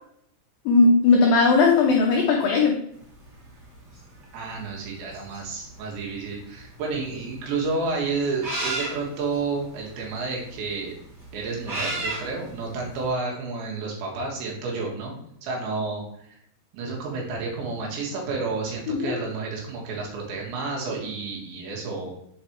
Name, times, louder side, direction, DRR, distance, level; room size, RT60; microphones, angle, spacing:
voice 1, 0.7-2.8 18.9-19.2, left 4 dB, 80° left, 1 dB, 2.1 m, -18 dB
sound 1, 3.0-13.1, right 2 dB, 30° right, 2.2 m, -35 dB
voice 2, 4.3-10.9 11.3-16.0 16.3-16.4 16.7-22.1, right 4 dB, 80° right, -2 dB, 4.1 m, -30 dB
7.9 x 4.7 x 4.3 m, 0.73 s
omnidirectional pair, 5.2 m